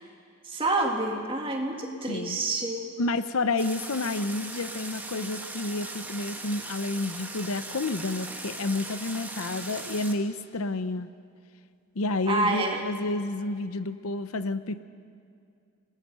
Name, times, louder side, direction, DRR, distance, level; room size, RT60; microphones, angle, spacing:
voice 1, 0.5-2.9 12.3-12.8, right 2 dB, 25° right, 1 dB, 2.3 m, -28 dB
voice 2, 2.0-2.4 3.0-11.1 11.9-14.8, left 2 dB, 75° left, 12 dB, 0.7 m, -30 dB
sound 1, 3.6-10.1, right 2 dB, 10° right, 1.4 m, -39 dB
27.0 x 19.0 x 5.6 m, 2.4 s
head